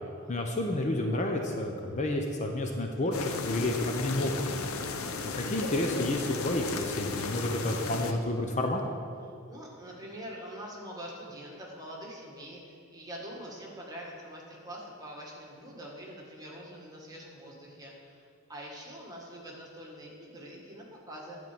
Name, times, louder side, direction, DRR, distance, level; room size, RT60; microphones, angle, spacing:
voice 1, 0.3-4.3 5.3-8.8, left 1 dB, 35° left, 2 dB, 0.7 m, -30 dB
sound 1, 3.1-8.1, left 4 dB, 85° left, 0.7 m, -35 dB
voice 2, 4.7-5.0 9.5-21.4, equal, 20° right, -2 dB, 1.7 m, -44 dB
11.0 x 4.6 x 7.3 m, 2.4 s
head